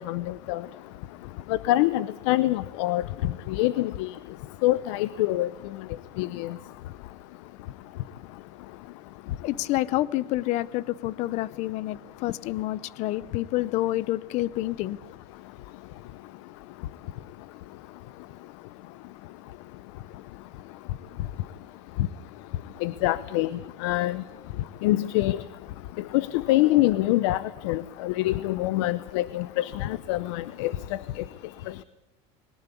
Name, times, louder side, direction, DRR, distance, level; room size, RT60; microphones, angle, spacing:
voice 1, 0.1-0.6 1.5-3.0 3.5-4.1 4.6-5.5 6.2-6.5 22.8-23.5 23.8-24.2 24.8-25.4 26.1-27.4 27.6-30.7 31.2-31.3, left 16 dB, 80° left, 17 dB, 0.8 m, -25 dB
voice 2, 9.4-15.0, left 16 dB, 50° left, 20 dB, 0.7 m, -28 dB
21.5 x 19.0 x 8.3 m, 0.94 s
cardioid pair, 160°, 15 cm